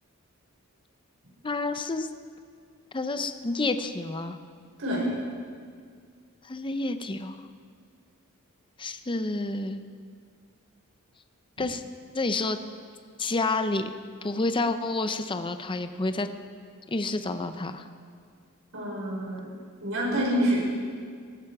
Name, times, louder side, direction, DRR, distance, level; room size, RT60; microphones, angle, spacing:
voice 1, 1.4-2.1 2.9-4.4 6.4-7.5 8.8-9.8 11.6-11.8 12.1-12.6 13.2-13.9 14.2-16.3 16.9-17.9, left 2 dB, 25° left, 9 dB, 0.6 m, -29 dB
voice 2, 4.8-5.2 18.7-19.4 19.8-20.6, equal, 70° right, -4 dB, 4.9 m, -27 dB
18.0 x 13.5 x 4.7 m, 2.1 s
head